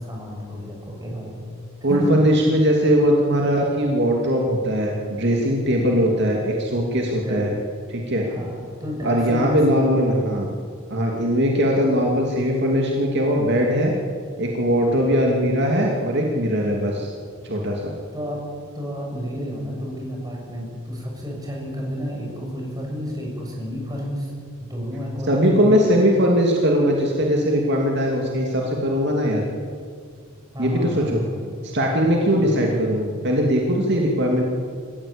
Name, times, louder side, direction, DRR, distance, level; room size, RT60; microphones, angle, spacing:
voice 1, 0.0-1.4 1.9-2.3 7.0-7.4 8.2-10.1 10.3-10.5 17.4-17.5 18.1-18.4 18.7-24.3 24.6-26.0 30.5-31.4 32.2-32.9, equal, 20° right, -1 dB, 6.7 m, -31 dB
voice 2, 1.8-7.5 7.9-8.5 9.0-10.5 10.9-13.9 14.4-17.1 17.4-17.9 25.3-29.4 30.6-31.2 31.6-34.4, equal, 55° right, 0 dB, 2.7 m, -20 dB
26.5 x 15.5 x 8.8 m, 2.2 s
head